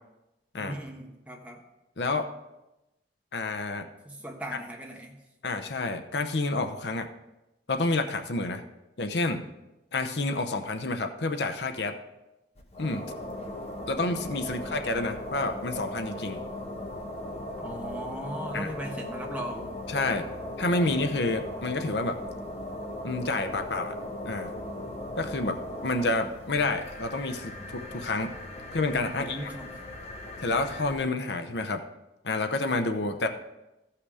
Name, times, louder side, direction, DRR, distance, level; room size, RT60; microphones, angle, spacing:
voice 1, 0.6-1.6 4.0-5.2 17.6-19.7 29.1-29.8, right 1 dB, 10° right, 0 dB, 1.3 m, -38 dB
voice 2, 2.0-2.3 3.3-3.9 5.4-7.1 7.7-8.6 9.0-9.4 9.9-12.0 12.8-13.0 13.9-16.4 18.5-18.7 19.9-20.3 20.6-22.2 23.0-23.9 24.2-24.5 25.2-28.3 28.7-29.4 30.4-31.8 32.2-33.3, left 2 dB, 75° left, 7 dB, 0.8 m, -29 dB
sound 1, 12.5-31.0, left 1 dB, 35° left, 1.3 m, -38 dB
14.5 x 5.8 x 4.9 m, 0.97 s
head